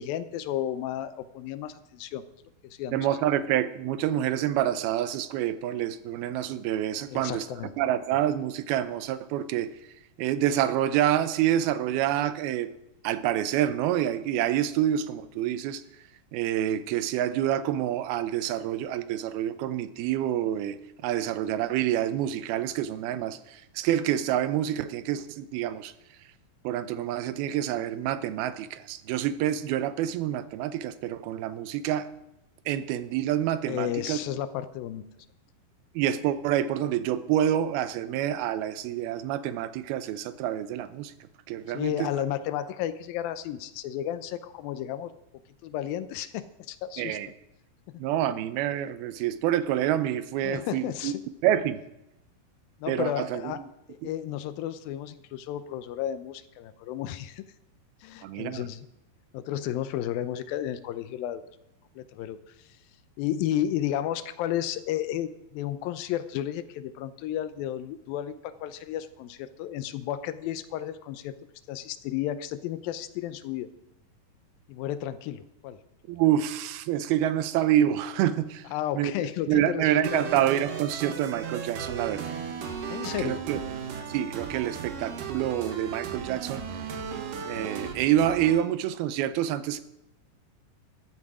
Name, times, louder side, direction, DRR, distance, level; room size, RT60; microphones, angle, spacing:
voice 1, 0.0-2.2 2.6-3.1 7.1-7.7 33.7-35.1 41.7-45.1 45.6-47.2 50.4-51.2 52.8-53.6 53.9-57.5 58.0-58.9 59.3-61.4 62.0-62.4 63.2-71.4 71.7-73.7 74.7-75.8 78.7-80.2 82.9-83.4, left 11 dB, 80° left, 12 dB, 2.4 m, -32 dB
voice 2, 2.9-7.5 7.8-9.7 10.2-12.7 13.0-15.8 16.3-20.8 21.0-25.9 26.6-32.1 32.7-34.2 36.0-41.1 41.5-42.1 47.0-47.3 48.0-51.1 51.4-51.8 52.9-53.6 58.2-58.7 76.1-78.7 78.9-79.1 79.5-82.3 83.2-83.6 84.1-86.6 87.4-89.8, right 11 dB, 90° right, 13 dB, 2.7 m, -27 dB
sound 1, 80.0-88.6, right 6 dB, 65° right, 2.8 m, -36 dB
13.5 x 11.5 x 4.9 m, 0.86 s
omnidirectional pair, 4.3 m